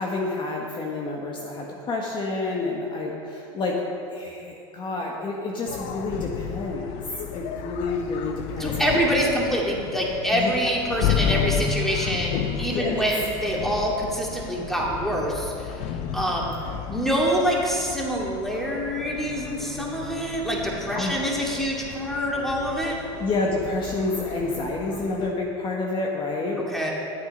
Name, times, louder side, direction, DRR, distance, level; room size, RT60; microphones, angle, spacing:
voice 1, 0.0-3.8 4.1-7.0 7.3-9.0 10.3-10.5 11.3-11.4 12.7-13.0 20.9-21.1 23.2-26.6, left 3 dB, 35° left, -1 dB, 1.5 m, -29 dB
sound 1, 5.7-25.3, left 8 dB, 60° left, 0.8 m, -33 dB
voice 2, 8.6-16.5 16.9-23.0 26.6-26.9, equal, ahead, -3 dB, 2.4 m, -26 dB
12.0 x 8.3 x 5.4 m, 2.5 s
supercardioid pair, 100°, 14 cm